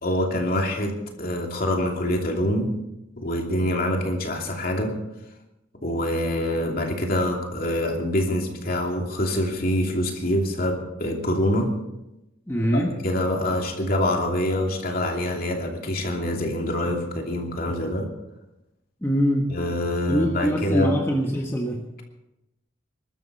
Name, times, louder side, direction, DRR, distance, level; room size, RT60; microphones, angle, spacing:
voice 1, 0.0-2.8 3.2-5.0 5.8-11.7 12.7-18.1 19.5-21.0, left 1 dB, 45° left, 1 dB, 2.8 m, -25 dB
voice 2, 12.5-12.9 19.0-19.6 20.1-21.9, equal, 10° left, 0 dB, 1.3 m, -23 dB
22.5 x 13.0 x 4.2 m, 0.92 s
head